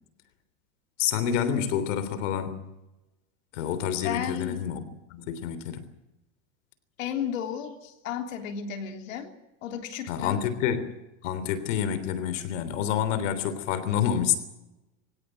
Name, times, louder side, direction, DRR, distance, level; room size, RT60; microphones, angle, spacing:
voice 1, 1.0-2.6 3.5-4.8 5.1-5.9 10.1-11.0 11.2-14.4, left 9 dB, 70° left, 12 dB, 3.4 m, -28 dB
voice 2, 4.0-4.6 7.0-9.3 9.6-10.4, left 8 dB, 85° left, 5 dB, 3.5 m, -33 dB
23.0 x 17.0 x 9.1 m, 0.99 s
supercardioid pair, 140°, 39 cm